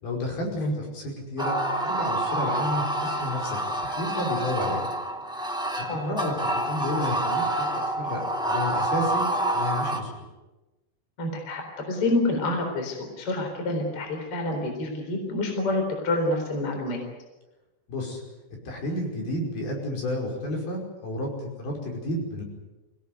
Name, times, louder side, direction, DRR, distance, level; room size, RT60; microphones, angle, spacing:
voice 1, 0.0-4.9 5.8-9.3 9.5-10.2 17.9-18.2 18.7-22.4, left 1 dB, 60° left, 0 dB, 7.0 m, -31 dB
sound 1, 1.4-10.0, right 1 dB, 5° right, 0.4 m, -27 dB
voice 2, 11.2-17.0, left 2 dB, 35° left, 3 dB, 4.6 m, -27 dB
24.5 x 18.0 x 9.5 m, 1.1 s
omnidirectional pair, 4.9 m